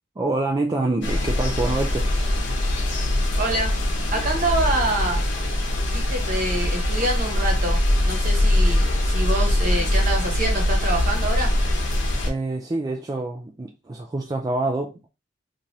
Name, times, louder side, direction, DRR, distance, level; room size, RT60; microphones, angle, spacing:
voice 1, 0.2-2.1 12.2-15.1, right 2 dB, 20° right, 0.3 m, -26 dB
sound 1, 1.0-12.3, left 1 dB, 65° left, 0.9 m, -22 dB
voice 2, 3.4-3.7 4.1-5.2 5.9-7.8 8.0-11.5, right 2 dB, 45° right, 1.2 m, -26 dB
3.2 x 2.5 x 2.7 m
head